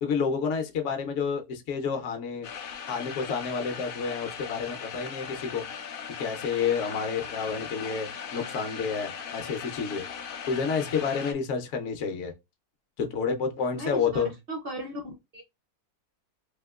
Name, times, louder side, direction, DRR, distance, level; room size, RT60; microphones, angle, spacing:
voice 1, 0.0-2.5 2.9-5.7 6.2-10.1 10.5-12.3 13.0-14.3, left 6 dB, 60° left, 0.9 m, -29 dB
sound 1, 2.4-11.3, left 7 dB, 85° left, 0.4 m, -39 dB
voice 2, 13.7-15.4, equal, 55° right, 0.7 m, -37 dB
3.5 x 2.8 x 2.3 m
omnidirectional pair, 1.6 m